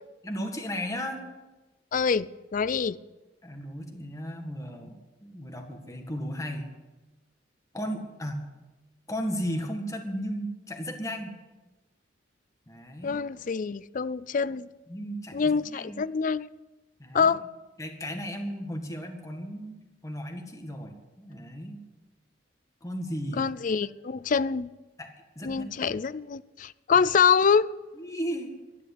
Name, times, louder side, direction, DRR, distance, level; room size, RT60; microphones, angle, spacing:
voice 1, 0.2-1.2 3.4-6.7 7.7-8.5 9.1-11.3 12.7-13.2 14.9-16.0 17.0-17.3 17.8-19.8 20.0-21.8 22.8-23.5 25.0-25.9 27.9-28.5, equal, 15° left, 1.9 m, -35 dB
voice 2, 1.9-3.0 13.0-14.7 15.3-16.5 17.1-17.4 23.3-24.7 25.4-27.7, left 6 dB, 45° left, 0.4 m, -25 dB
13.0 x 11.0 x 8.3 m
head